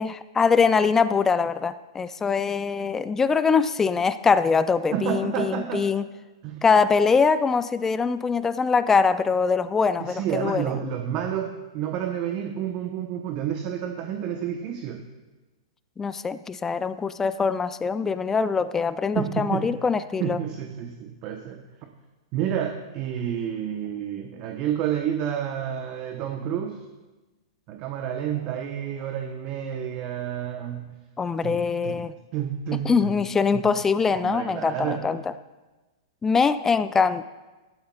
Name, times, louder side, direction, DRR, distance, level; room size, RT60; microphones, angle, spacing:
voice 1, 0.0-6.1 6.6-10.6 16.0-20.4 31.2-32.1 32.8-35.2 36.2-37.2, left 5 dB, 15° left, 14 dB, 0.4 m, -23 dB
voice 2, 4.9-5.9 6.4-6.6 10.0-15.0 19.1-19.7 20.2-21.9 22.3-26.9 27.7-31.0 31.4-32.0 32.3-33.2 33.5-33.6 34.1-35.0, right 9 dB, 40° right, 5 dB, 0.9 m, -30 dB
15.0 x 12.5 x 2.4 m, 1.2 s
hypercardioid pair, 115°, 3 cm